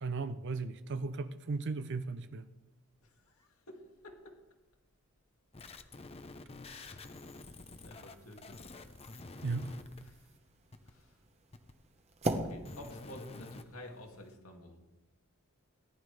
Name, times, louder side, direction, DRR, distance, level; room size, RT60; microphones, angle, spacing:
voice 1, 0.0-2.5 9.4-9.8, right 4 dB, 55° right, 0.5 m, -36 dB
voice 2, 3.0-4.4 6.6-7.1 7.7-8.7 10.0-10.3 10.8-11.2 12.3-14.8, left 1 dB, 80° left, 2.1 m, -52 dB
sound 1, 5.5-10.1 10.7-10.9 11.5-11.7 12.3-13.6, left 2 dB, 30° left, 0.7 m, -48 dB
sound 2, 7.1-14.3, right 1 dB, 30° right, 1.1 m, -43 dB
18.5 x 11.0 x 3.3 m
head